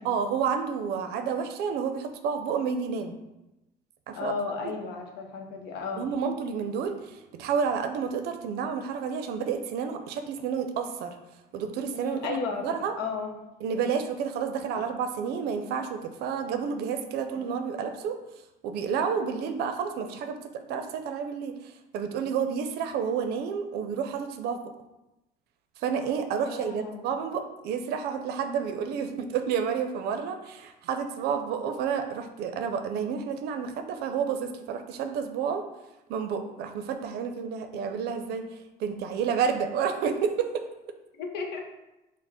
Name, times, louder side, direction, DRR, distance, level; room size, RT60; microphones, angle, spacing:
voice 1, 0.0-3.1 4.1-4.3 4.6-4.7 6.0-11.2 11.5-12.3 12.6-12.9 13.6-18.2 18.6-20.4 20.7-21.5 21.9-24.6 25.8-35.6 36.1-38.4 38.8-40.6, right 6 dB, 75° right, 7 dB, 0.5 m, -30 dB
voice 2, 4.1-6.1 11.9-12.7 13.0-13.3 14.7-14.8 17.3-17.5 26.4-27.1 41.2-41.6, left 4 dB, 80° left, 3 dB, 0.7 m, -34 dB
4.8 x 2.0 x 4.1 m, 0.97 s
cardioid pair, 115°, 17 cm